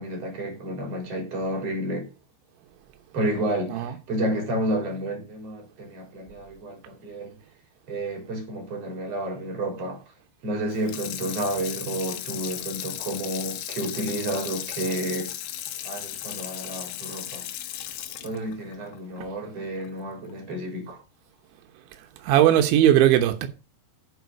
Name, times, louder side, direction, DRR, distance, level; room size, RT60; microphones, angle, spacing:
voice 1, 0.0-2.1 3.1-7.4 7.9-10.0 10.4-15.3 15.8-17.5 18.2-21.0, right 1 dB, 35° right, 4.6 m, -30 dB
Water tap faucet / Sink (filling or washing), 10.7-19.9 20.3-20.4, left 12 dB, 75° left, 3.0 m, -36 dB
voice 2, 22.2-23.5, right 12 dB, 90° right, 3.5 m, -18 dB
9.2 x 7.6 x 5.3 m
omnidirectional pair, 5.1 m